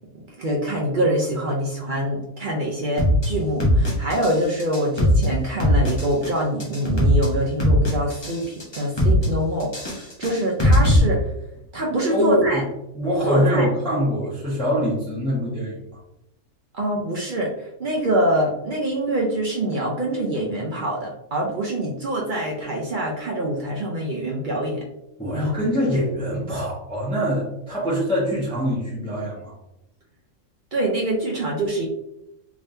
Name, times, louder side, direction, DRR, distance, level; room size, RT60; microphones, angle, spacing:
voice 1, 0.1-11.2 11.7-12.6 13.3-13.7 16.7-24.8 25.3-25.6 30.7-31.9, right 1 dB, 70° right, -2 dB, 0.4 m, -25 dB
sound 1, 3.0-3.3 3.6-4.3 4.6-5.3 5.6-6.3 6.6-7.3 7.6-8.3 8.6-9.3 9.6-11.0, left 1 dB, 25° left, 0.7 m, -19 dB
voice 2, 12.1-12.6 12.9-15.8 25.2-29.5, equal, 5° left, -7 dB, 1.0 m, -24 dB
3.6 x 3.4 x 2.7 m, 0.86 s
omnidirectional pair, 1.7 m